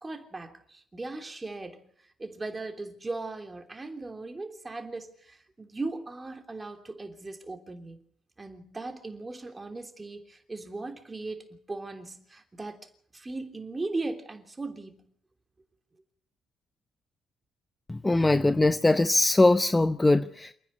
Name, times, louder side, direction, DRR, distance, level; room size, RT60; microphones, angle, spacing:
voice 1, 0.0-1.8 2.2-8.0 8.4-15.1, right 3 dB, 20° right, 3.2 m, -38 dB
voice 2, 17.9-20.5, left 2 dB, 15° left, 0.9 m, -22 dB
27.5 x 10.0 x 9.8 m
cardioid pair, 90°, 0 cm